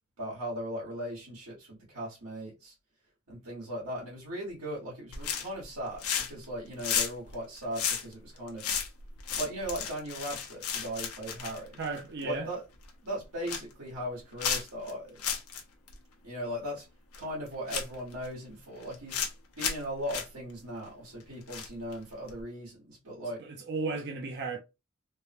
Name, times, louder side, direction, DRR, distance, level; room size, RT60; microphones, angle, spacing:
voice 1, 0.2-2.7 3.3-8.6 9.3-11.8 12.2-12.6 13.0-15.2 16.2-16.9 17.2-19.2 19.6-23.4, equal, 85° right, 1.5 m, -38 dB
sound 1, 5.1-5.6 5.9-6.4 6.7-12.3 12.7-12.9 13.2-13.7 14.4-14.9 15.2-15.6 15.9-16.0 17.1-17.2 17.7-18.3 18.8-19.3 19.6-19.8 20.1-20.2 21.5-21.9 22.3-22.4, left 7 dB, 80° left, 0.7 m, -33 dB
voice 2, 11.8-12.5 23.4-24.6, right 4 dB, 50° right, 0.5 m, -34 dB
3.2 x 2.1 x 2.8 m
head